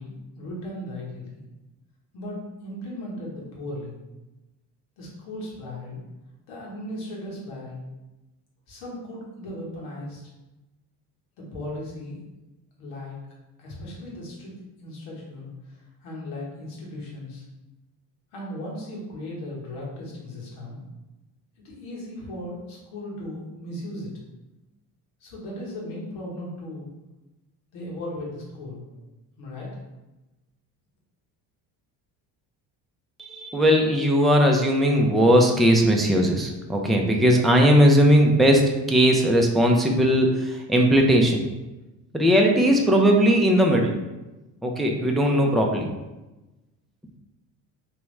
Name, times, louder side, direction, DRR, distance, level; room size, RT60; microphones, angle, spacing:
voice 1, 0.0-1.4 2.1-4.0 5.0-6.0 6.5-7.8 8.7-10.2 11.4-12.2 12.8-13.2 13.6-14.5 14.8-17.4 18.3-20.8 21.6-24.1 25.2-26.9 27.7-29.0 29.4-29.7, left 1 dB, 75° left, -4 dB, 1.5 m, -37 dB
voice 2, 33.2-41.4 42.1-43.9 44.6-45.9, equal, ahead, 1 dB, 0.5 m, -19 dB
3.6 x 2.9 x 3.2 m, 1.0 s
hypercardioid pair, 60°, 50 cm